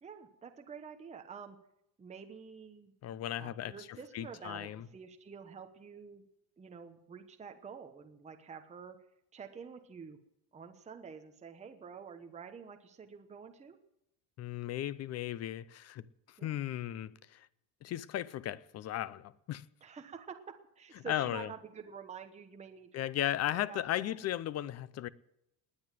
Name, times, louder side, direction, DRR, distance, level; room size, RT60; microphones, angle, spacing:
voice 1, 0.0-1.6 2.0-2.9 3.3-6.3 6.6-9.0 9.3-10.2 10.5-13.8 16.4-16.6 19.8-20.4 20.8-22.9 23.2-24.2, right 6 dB, 15° right, 1.1 m, -48 dB
voice 2, 3.0-4.8 14.4-17.5 17.8-19.6 21.1-21.5 22.9-25.1, left 12 dB, 35° left, 0.6 m, -36 dB
19.5 x 9.7 x 7.6 m
cardioid pair, 170°, 47 cm